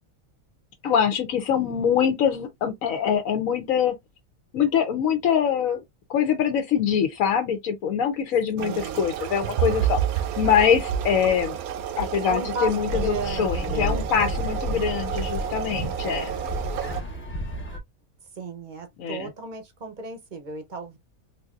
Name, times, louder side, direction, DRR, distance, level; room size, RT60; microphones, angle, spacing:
voice 1, 0.8-3.9 4.5-5.8 6.1-10.0 10.4-11.6 12.0-16.3 19.0-19.3, left 8 dB, 75° left, 1.1 m, -24 dB
voice 2, 8.6-9.0 12.3-14.0 16.0-16.4 18.4-21.0, right 2 dB, 45° right, 0.7 m, -34 dB
sound 1, 8.6-17.0, right 9 dB, 80° right, 1.0 m, -30 dB
sound 2, 12.6-17.8, right 1 dB, 10° left, 0.7 m, -31 dB
3.8 x 2.7 x 2.4 m
omnidirectional pair, 1.5 m